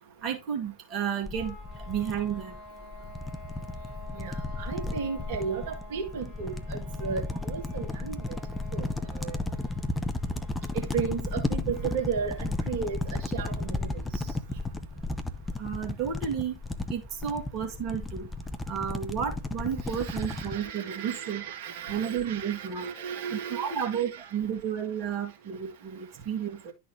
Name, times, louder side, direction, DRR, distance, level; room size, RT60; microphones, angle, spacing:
voice 1, 0.2-1.6 1.9-2.5 15.6-16.6 16.9-18.3 18.7-21.4 21.9-22.9 23.3-26.7, right 8 dB, 35° right, 2.1 m, -32 dB
sound 1, 1.3-14.1, left 1 dB, 35° left, 4.6 m, -49 dB
sound 2, 1.3-20.6, left 2 dB, 10° left, 0.9 m, -34 dB
voice 2, 4.1-8.4 8.7-8.9 9.1-9.4 10.7-14.3 19.8-24.3, right 6 dB, 50° right, 1.5 m, -35 dB
11.5 x 4.2 x 3.1 m
figure-of-eight pair, 90°, 0 cm